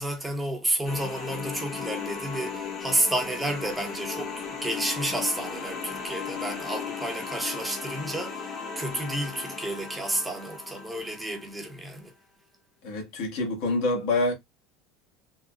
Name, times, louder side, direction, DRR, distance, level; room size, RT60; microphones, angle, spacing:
voice 1, 0.0-12.1, right 1 dB, 10° right, 0.8 m, -31 dB
sound 1, 0.8-11.6, left 5 dB, 35° left, 1.0 m, -36 dB
voice 2, 12.8-14.3, left 2 dB, 75° left, 1.4 m, -26 dB
3.7 x 2.2 x 2.4 m
supercardioid pair, 120°, 0 cm